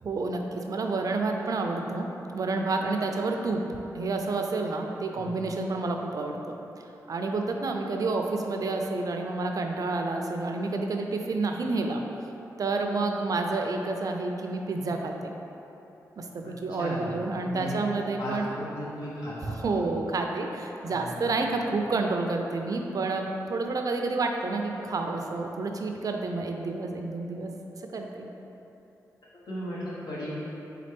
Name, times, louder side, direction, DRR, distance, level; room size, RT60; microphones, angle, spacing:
voice 1, 0.0-3.6 3.9-6.6 7.1-12.0 12.6-15.3 16.2-18.5 19.5-27.5 27.9-28.3, right 3 dB, 60° right, 3 dB, 0.4 m, -29 dB
voice 2, 16.4-17.2 17.4-17.8 18.2-19.7 20.9-21.2 29.5-30.3, equal, 75° left, -8 dB, 1.3 m, -36 dB
4.2 x 3.7 x 3.3 m, 3.0 s
cardioid pair, 55°, 7 cm